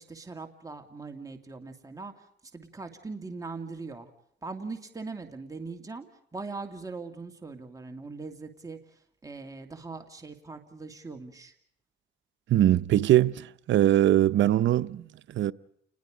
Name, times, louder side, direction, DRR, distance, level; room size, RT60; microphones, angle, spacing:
voice 1, 0.0-2.1 2.5-4.1 4.4-6.1 6.3-8.8 9.2-11.5, right 3 dB, 15° right, 2.4 m, -40 dB
voice 2, 12.5-15.5, right 12 dB, 70° right, 0.7 m, -22 dB
29.0 x 21.0 x 5.1 m
cardioid pair, 90°, 20 cm